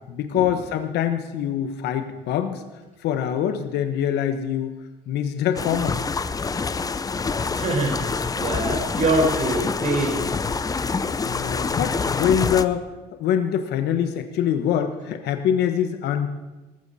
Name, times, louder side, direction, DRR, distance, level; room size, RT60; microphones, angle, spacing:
voice 1, 0.0-2.6 3.0-4.8 5.1-6.0 11.2-12.9 13.2-16.3, left 9 dB, 80° left, 7 dB, 1.2 m, -24 dB
sound 1, 5.6-12.7, left 4 dB, 20° left, 0.6 m, -26 dB
voice 2, 7.5-10.2, right 2 dB, 45° right, 0 dB, 4.8 m, -24 dB
18.5 x 14.5 x 4.2 m, 1.1 s
cardioid pair, 110°, 17 cm